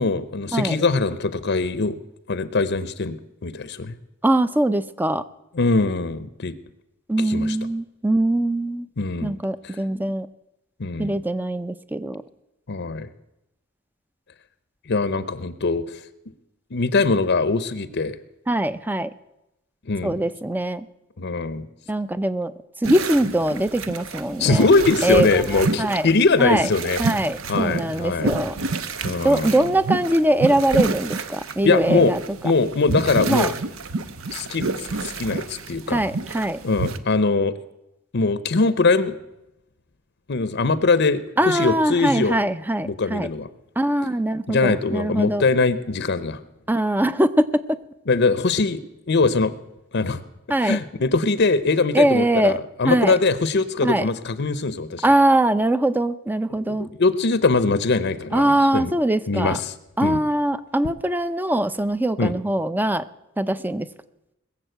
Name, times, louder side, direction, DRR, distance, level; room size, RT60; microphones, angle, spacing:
voice 1, 0.0-2.0 2.3-3.2 3.4-3.9 5.5-6.5 7.2-7.6 9.0-9.4 9.6-9.8 10.8-11.2 12.7-13.1 14.9-15.8 16.7-18.2 19.9-20.2 21.2-21.7 24.4-27.0 27.5-28.3 29.0-29.7 31.6-32.2 32.4-33.5 34.3-36.0 36.6-37.5 38.1-39.1 40.3-42.4 42.8-43.5 44.5-46.4 48.1-48.8 49.1-49.5 49.9-50.2 50.6-55.0 56.6-58.9 59.3-59.7 60.0-60.2 62.2-62.3, left 3 dB, 55° left, 14 dB, 0.7 m, -22 dB
voice 2, 4.2-5.2 7.1-8.9 9.2-10.3 11.0-12.2 18.5-19.1 20.0-20.8 21.9-22.5 22.8-24.7 25.0-26.1 26.4-26.7 27.0-28.6 29.2-32.2 33.3-33.5 35.9-36.6 41.4-43.3 43.8-45.4 46.7-47.5 50.5-50.8 51.9-52.6 52.8-53.2 53.8-54.1 55.0-56.9 58.3-59.6 60.0-63.0 63.4-63.9, right 1 dB, 10° right, 13 dB, 0.5 m, -22 dB
sound 1, 22.8-37.0, right 3 dB, 75° right, 0.9 m, -28 dB
21.0 x 7.3 x 7.9 m, 0.90 s
head